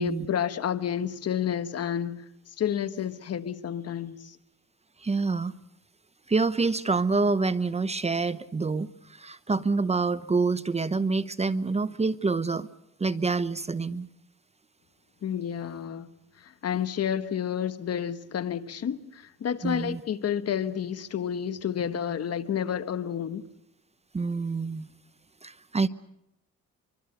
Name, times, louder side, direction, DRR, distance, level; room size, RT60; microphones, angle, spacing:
voice 1, 0.0-2.2 2.6-4.4 15.2-16.1 16.4-23.4, left 8 dB, 55° left, 1.3 m, -30 dB
voice 2, 5.0-5.5 6.3-12.7 13.0-14.1 19.6-20.0 24.1-24.9 25.4-25.9, right 4 dB, 20° right, 0.8 m, -27 dB
25.0 x 24.0 x 6.8 m
cardioid pair, 90°, 30 cm